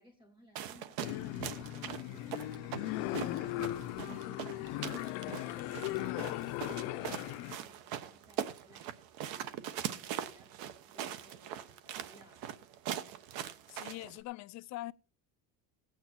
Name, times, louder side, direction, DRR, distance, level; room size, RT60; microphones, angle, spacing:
voice 1, 0.0-12.4, left 1 dB, 15° right, 3.2 m, -61 dB
sound 1, 0.6-14.2, right 10 dB, 70° right, 1.2 m, -42 dB
sound 2, 1.0-7.6, left 15 dB, 85° left, 0.8 m, -38 dB
voice 2, 13.7-14.9, left 17 dB, 50° left, 0.6 m, -43 dB
17.0 x 8.9 x 4.4 m
cardioid pair, 165°, 37 cm